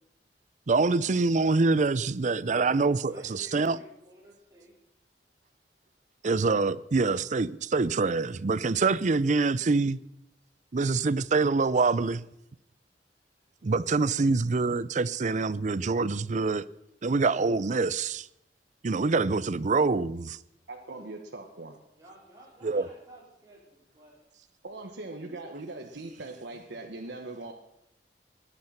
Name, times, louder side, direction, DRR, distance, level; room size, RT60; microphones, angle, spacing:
voice 1, 0.7-3.8 6.2-10.0 10.7-12.2 13.6-16.7 17.0-18.3 18.8-20.4 22.6-22.9, right 3 dB, 45° right, 0.5 m, -25 dB
voice 2, 2.4-4.8 20.9-21.1 21.9-24.2, right 1 dB, 20° right, 4.4 m, -54 dB
voice 3, 20.7-21.8 24.6-27.5, right 2 dB, 85° right, 1.4 m, -40 dB
17.5 x 11.0 x 5.8 m
head